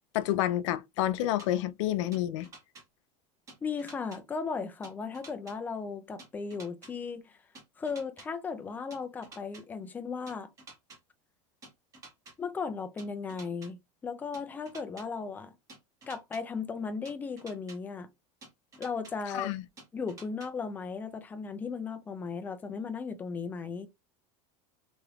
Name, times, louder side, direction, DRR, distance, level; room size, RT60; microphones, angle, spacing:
voice 1, 0.1-2.5 19.3-19.6, left 13 dB, 75° left, 0.4 m, -29 dB
sound 1, 1.4-1.5 2.1-2.8 3.5-4.2 4.8-5.5 6.2-6.9 7.5-8.3 8.9-9.6 10.3-11.0 11.6-12.3 13.0-13.7 14.3-15.0 15.7-16.4 17.0-17.8 18.4-19.1 19.8-20.5, right 3 dB, 20° right, 1.1 m, -50 dB
voice 2, 3.6-7.4 7.8-10.5 12.4-13.8 14.0-15.5 16.1-18.1 18.8-19.5 19.9-23.9, left 5 dB, 10° left, 0.3 m, -36 dB
3.1 x 3.0 x 2.3 m
supercardioid pair, 165°, 16 cm